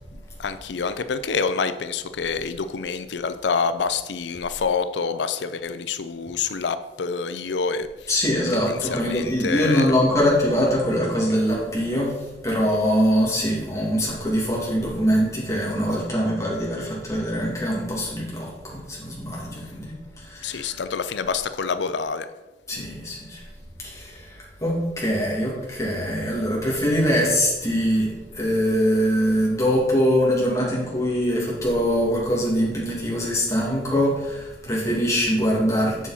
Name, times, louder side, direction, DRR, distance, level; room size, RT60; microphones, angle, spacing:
voice 1, 0.4-8.1 8.5-9.9 20.4-22.3 22.7-23.0, left 5 dB, 85° left, 12 dB, 0.5 m, -27 dB
voice 2, 8.1-12.2 12.4-20.8 22.7-23.4 23.8-36.1, equal, 20° left, -4 dB, 2.5 m, -23 dB
7.1 x 7.0 x 4.3 m, 1.1 s
head